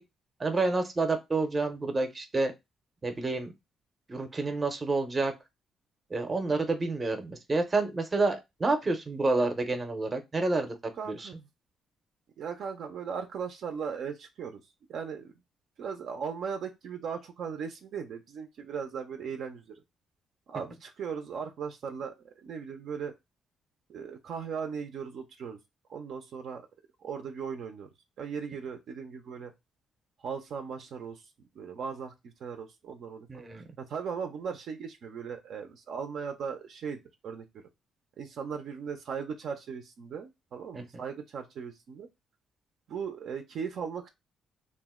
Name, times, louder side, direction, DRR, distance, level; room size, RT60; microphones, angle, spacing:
voice 1, 0.4-2.5 3.0-3.5 4.1-5.3 6.1-10.7 11.1-11.3 33.3-33.7 40.7-41.0, right 3 dB, 30° right, 6 dB, 0.6 m, -29 dB
voice 2, 11.0-11.5 12.4-14.6 14.9-15.3 15.8-19.8 20.5-23.1 23.9-25.6 25.9-26.6 27.0-27.9 28.2-29.5 30.2-31.2 31.6-33.3 33.6-37.5 38.2-42.1 42.9-44.1, right 6 dB, 70° right, 5 dB, 0.5 m, -38 dB
2.5 x 2.1 x 3.5 m, 0.21 s
cardioid pair, 90°, 0 cm